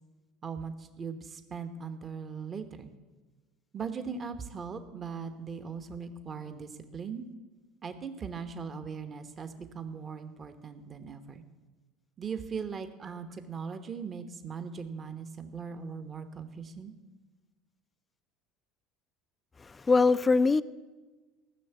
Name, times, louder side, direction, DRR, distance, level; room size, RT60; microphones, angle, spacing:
voice 1, 0.4-2.9 3.7-7.3 7.8-11.4 12.2-16.9, right 6 dB, 35° right, 1.1 m, -39 dB
voice 2, 19.6-20.6, left 4 dB, 20° left, 0.3 m, -23 dB
14.5 x 6.5 x 8.1 m
hypercardioid pair, 85°, 0 cm